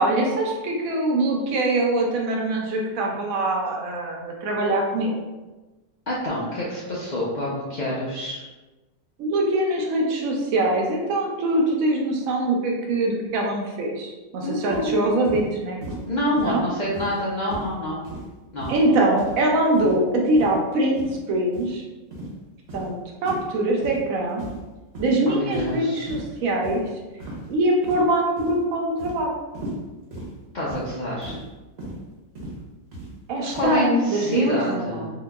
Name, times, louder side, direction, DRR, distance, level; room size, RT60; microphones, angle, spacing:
voice 1, 0.0-5.1 9.2-15.8 16.4-16.6 18.7-21.0 21.3-21.8 22.7-24.4 25.0-26.8 27.5-29.3 33.3-35.1, right 1 dB, 80° right, -1 dB, 1.1 m, -23 dB
voice 2, 6.1-8.4 14.4-15.1 16.1-18.0 18.5-18.7 25.3-26.1 30.5-31.4 33.5-35.1, left 1 dB, 70° left, -6 dB, 0.4 m, -27 dB
sound 1, 14.7-14.9 15.2-15.5 15.8-16.0 16.4-16.6 16.9-17.2 17.5-17.7 18.0-18.3 18.6-18.9 19.2-19.4 19.7-20.0 20.3-20.5 20.9-21.1 21.5-21.7 22.1-22.3 22.7-22.9 23.2-23.5 23.8-24.0 24.4-24.7 24.9-25.1 25.5-25.8 26.1-26.3 26.6-26.8 27.2-27.5 27.8-28.1 28.4-28.6 29.0-29.2 29.5-29.8 30.1-30.3 30.7-30.9 31.2-31.4 31.8-32.0 32.3-32.6 32.9-33.1 33.5-33.7, right 1 dB, 55° right, 1.0 m, -36 dB
3.7 x 2.6 x 2.2 m, 1.1 s
omnidirectional pair, 1.5 m